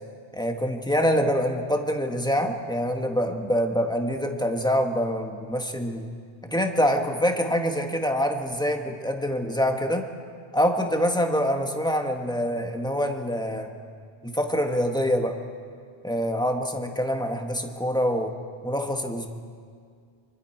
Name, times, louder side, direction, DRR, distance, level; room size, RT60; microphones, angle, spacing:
voice 1, 0.3-6.1 6.4-10.0 10.5-13.7 14.2-15.3 16.0-18.3 18.6-19.3, equal, 5° left, 3 dB, 1.4 m, -25 dB
25.0 x 24.5 x 4.5 m, 2.2 s
omnidirectional pair, 1.1 m